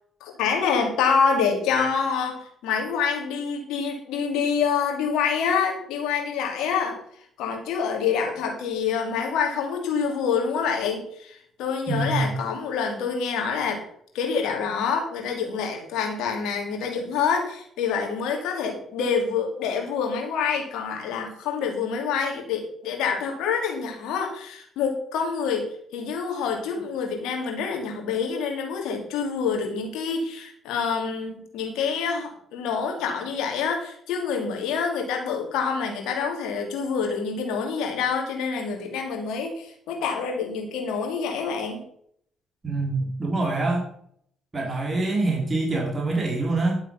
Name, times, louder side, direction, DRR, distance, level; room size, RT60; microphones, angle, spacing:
voice 1, 0.2-7.0 7.4-13.8 14.1-41.9, left 6 dB, 70° left, 2 dB, 2.8 m, -27 dB
voice 2, 11.9-12.2 42.6-43.9 44.5-46.8, right 2 dB, 30° right, -1 dB, 4.3 m, -25 dB
11.5 x 7.0 x 5.7 m, 0.66 s
hypercardioid pair, 45°, 0 cm